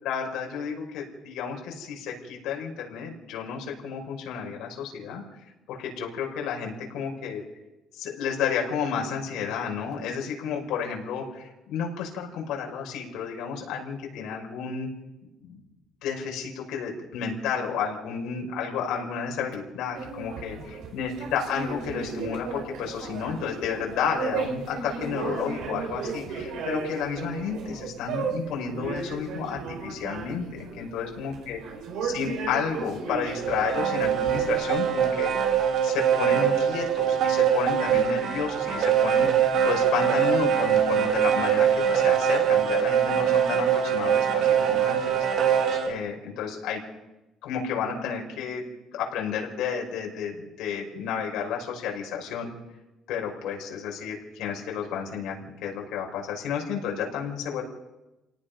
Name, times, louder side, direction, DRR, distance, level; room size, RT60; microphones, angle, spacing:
voice 1, 0.0-5.2 5.7-7.4 7.9-14.9 15.4-15.6 16.0-31.6 32.0-35.3 35.8-45.2 45.8-46.8 47.4-48.6 48.9-52.5 53.1-57.6, left 6 dB, 70° left, 0 dB, 5.9 m, -31 dB
sound 1, 19.9-34.6, right 5 dB, 70° right, 5.5 m, -35 dB
sound 2, 33.3-45.9, right 8 dB, 50° right, 2.4 m, -23 dB
29.0 x 18.0 x 5.5 m, 1.0 s
cardioid pair, 170°, 0 cm